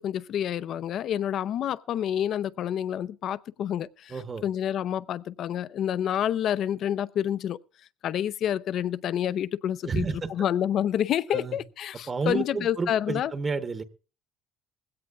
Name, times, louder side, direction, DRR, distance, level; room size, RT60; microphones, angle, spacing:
voice 1, 0.0-4.1 4.4-7.6 8.0-13.3, left 10 dB, 55° left, 0.6 m, -28 dB
voice 2, 4.1-4.4 9.8-10.3 11.3-11.6 12.1-13.8, right 4 dB, 25° right, 1.0 m, -30 dB
20.5 x 16.5 x 2.4 m
cardioid pair, 120°, 0 cm